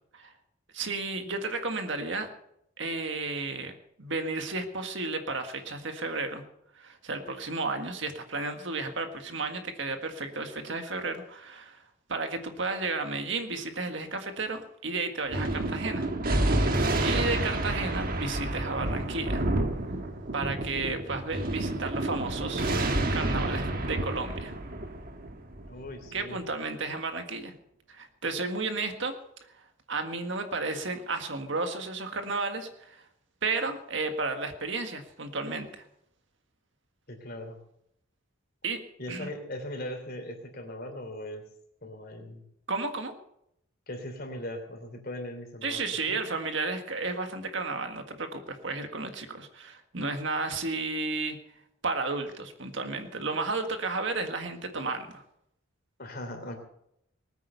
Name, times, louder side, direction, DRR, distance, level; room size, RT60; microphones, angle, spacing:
voice 1, 0.7-2.3 2.8-6.4 6.7-11.8 12.1-16.1 16.4-16.7 17.0-19.4 20.3-22.7 23.1-24.5 26.1-27.5 27.9-29.1 29.4-29.5 29.9-33.0 33.4-35.8 38.6-38.8 39.1-39.3 42.7-43.1 45.6-51.4 51.8-55.2, right 3 dB, 60° right, 6 dB, 1.8 m, -33 dB
Thunder, 15.3-26.2, right 1 dB, 45° right, 1.6 m, -29 dB
voice 2, 25.7-26.4 37.1-37.6 39.0-41.4 41.8-42.4 43.9-45.8 46.1-46.2 56.0-56.6, left 1 dB, 45° left, 5 dB, 3.2 m, -39 dB
20.0 x 9.2 x 6.8 m, 0.76 s
head